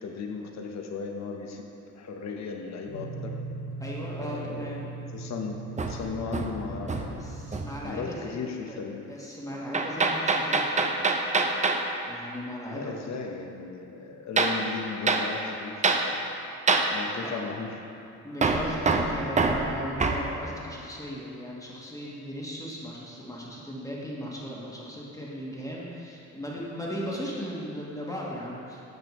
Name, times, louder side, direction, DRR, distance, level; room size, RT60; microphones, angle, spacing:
voice 1, 0.0-1.6 1.9-3.3 4.2-7.3 7.8-9.1 12.7-16.3 16.9-17.8, left 4 dB, 65° left, 3 dB, 0.9 m, -36 dB
sound 1, 2.9-8.0, right 3 dB, 40° left, 1.9 m, -39 dB
voice 2, 3.8-4.8 7.1-8.3 8.7-8.8 9.1-10.8 12.1-13.2 17.2-17.3 18.2-28.8, equal, 10° left, -5 dB, 1.3 m, -37 dB
Hammer, 5.8-7.2 7.5-7.8 9.7-11.9 14.4-14.6 15.1-15.3 15.8-16.1 16.7-16.9 18.4-20.3, right 3 dB, 25° right, 0.5 m, -25 dB
9.3 x 6.7 x 3.1 m, 2.7 s
cardioid pair, 90°, 30 cm